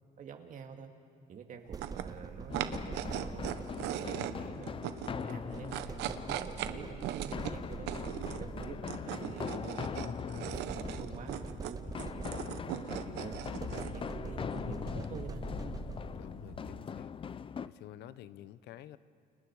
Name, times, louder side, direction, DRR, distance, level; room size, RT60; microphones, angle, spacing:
voice 1, 0.2-0.9 1.3-4.7 5.1-7.9 8.3-10.1 10.4-15.4, right 6 dB, 50° right, 4 dB, 2.6 m, -47 dB
sound 1, 1.7-4.2 5.5-9.1 10.5-12.7 13.3-16.4, right 4 dB, 20° right, 0.6 m, -45 dB
sound 2, 1.7-17.0, right 12 dB, 85° right, 1.0 m, -41 dB
sound 3, 2.5-17.7, left 7 dB, 30° left, 0.6 m, -41 dB
voice 2, 4.1-4.5 8.7-9.1 16.1-19.0, left 12 dB, 80° left, 15 dB, 0.8 m, -51 dB
29.5 x 29.0 x 4.9 m, 2.2 s
cardioid pair, 110°, 17 cm